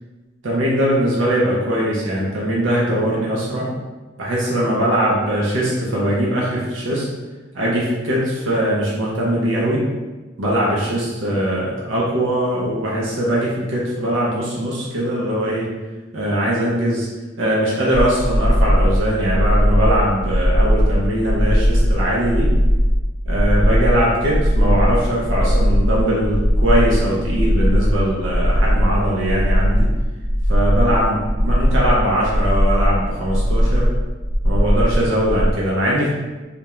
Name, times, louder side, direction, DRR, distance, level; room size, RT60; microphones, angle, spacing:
voice 1, 0.4-3.7 4.2-7.1 7.5-9.8 10.4-15.7 16.1-17.1 17.4-22.5 23.3-29.9 30.5-33.9 34.4-36.1, equal, 75° right, -5 dB, 0.6 m, -21 dB
sound 1, 17.9-35.5, equal, 80° left, 0.6 m, -18 dB
2.4 x 2.1 x 2.9 m, 1.2 s
head